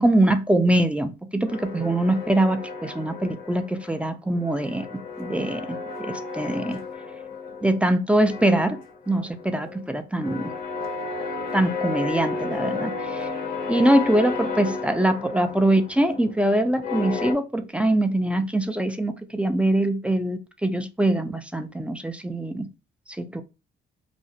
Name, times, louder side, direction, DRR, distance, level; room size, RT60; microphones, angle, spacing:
voice 1, 0.0-4.9 5.2-6.8 7.6-8.8 9.1-10.5 11.5-13.3 13.7-22.7 23.2-23.4, right 1 dB, 5° right, 0.3 m, -23 dB
sound 1, 1.5-4.0 4.3-7.9 8.2-17.3, left 4 dB, 50° left, 0.7 m, -33 dB
2.4 x 2.0 x 2.6 m
cardioid pair, 90°, 20 cm